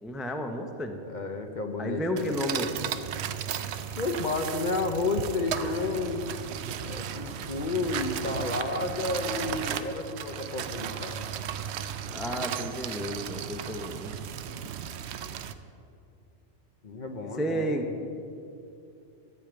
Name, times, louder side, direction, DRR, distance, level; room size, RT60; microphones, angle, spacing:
voice 1, 0.0-1.0 1.8-2.7 12.1-14.2 17.4-18.1, equal, ahead, 5 dB, 0.4 m, -32 dB
voice 2, 1.1-2.4 4.0-6.3 6.8-11.3 16.8-18.0, left 3 dB, 45° left, 5 dB, 0.8 m, -31 dB
sound 1, 2.2-15.5, right 9 dB, 65° right, 0.8 m, -35 dB
14.0 x 5.1 x 8.8 m, 2.6 s
omnidirectional pair, 1.3 m